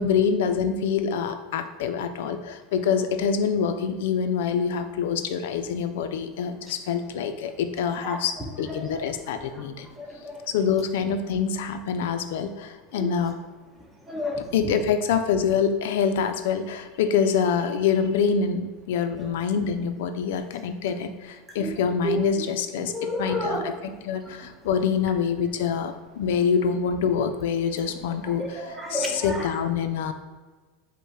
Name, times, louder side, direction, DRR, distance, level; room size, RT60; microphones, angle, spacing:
voice 1, 0.0-9.9 10.5-13.4 14.5-30.1, left 6 dB, 70° left, 8 dB, 0.4 m, -26 dB
voice 2, 10.0-10.5 13.0-13.1 14.1-14.5 21.6-21.7 22.0-22.2 22.9-23.6 28.4-29.5, equal, 5° right, 0 dB, 0.7 m, -30 dB
5.3 x 2.1 x 4.7 m, 1.3 s
supercardioid pair, 165°, 0 cm